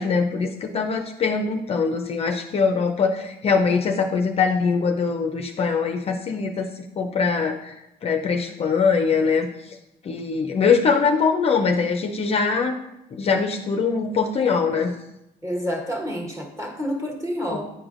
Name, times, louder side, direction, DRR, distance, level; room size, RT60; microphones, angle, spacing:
voice 1, 0.0-7.7 8.0-9.8 10.0-12.8 13.1-14.9, left 5 dB, 35° left, 4 dB, 0.5 m, -22 dB
voice 2, 15.4-17.7, equal, 15° right, -1 dB, 1.3 m, -28 dB
9.3 x 4.8 x 2.5 m, 0.91 s
cardioid pair, 110°, 17 cm